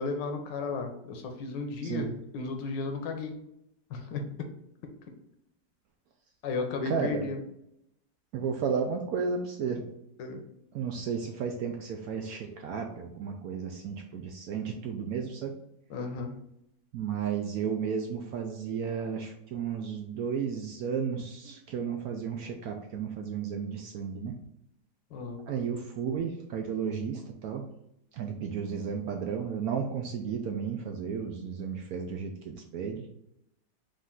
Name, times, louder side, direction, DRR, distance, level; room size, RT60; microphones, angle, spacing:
voice 1, 0.0-3.4 3.9-4.2 6.4-7.4 10.2-10.4 15.9-16.3 25.1-25.4, left 4 dB, 80° left, 4 dB, 1.4 m, -34 dB
voice 2, 6.9-7.3 8.3-9.9 10.7-15.5 16.9-24.4 25.5-27.7 28.1-33.1, right 6 dB, 70° right, 3 dB, 0.9 m, -33 dB
5.2 x 2.5 x 3.7 m, 0.80 s
omnidirectional pair, 1.9 m